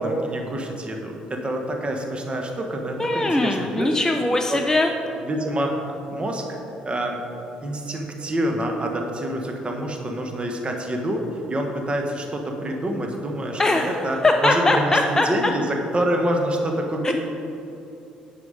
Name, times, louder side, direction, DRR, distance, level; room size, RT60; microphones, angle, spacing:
voice 1, 0.0-3.9 4.5-4.6 5.2-6.6 6.8-7.2 7.6-11.2 11.5-17.1, right 1 dB, 25° right, 2 dB, 1.4 m, -27 dB
voice 2, 3.0-4.9 13.6-13.9 14.2-15.3 17.0-17.1, left 2 dB, 15° left, 4 dB, 0.5 m, -20 dB
9.8 x 5.8 x 5.2 m, 2.8 s
figure-of-eight pair, 50°, 4 cm